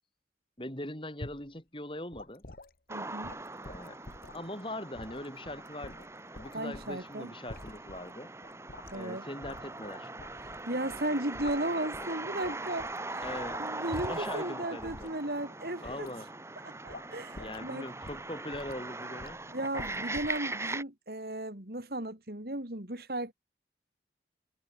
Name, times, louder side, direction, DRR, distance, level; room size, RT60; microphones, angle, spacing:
voice 1, 0.6-2.4 3.5-4.0 4.3-6.1 6.3-8.3 8.9-10.1 13.2-13.6 14.1-15.1 15.8-16.3 17.4-19.4, left 1 dB, 30° left, 5.9 m, -41 dB
sound 1, 1.2-1.5 2.1-2.7 3.2-4.5 4.9-7.0 7.5-8.1 8.4-9.1 9.4-10.6 10.9-12.1 12.4-14.4 14.8-15.1 15.8-16.2 16.9-17.1 17.3-17.8 18.0-18.8 19.2-19.4 19.8-20.4, left 2 dB, 55° left, 1.5 m, -47 dB
sound 2, 2.9-20.8, right 2 dB, 15° right, 1.7 m, -41 dB
voice 2, 2.9-3.3 6.5-7.3 8.9-9.2 10.4-13.3 13.6-16.1 16.6-17.9 19.5-23.3, right 1 dB, 60° right, 3.3 m, -35 dB
head